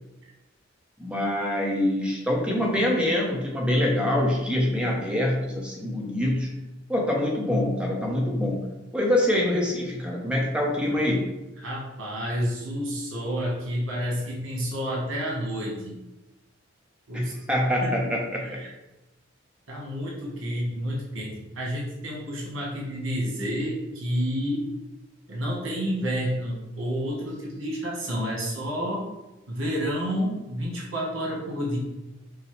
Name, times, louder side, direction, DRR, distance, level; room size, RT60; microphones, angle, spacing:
voice 1, 1.0-6.5 6.9-8.6 8.9-11.3 17.1-18.6, left 1 dB, 5° right, -2 dB, 0.6 m, -25 dB
voice 2, 11.6-16.0 17.1-17.3 17.8-17.9 18.4-18.7 19.7-24.6 25.3-29.1 29.5-31.8, equal, 85° right, -3 dB, 1.2 m, -30 dB
5.2 x 2.0 x 3.1 m, 1.0 s
head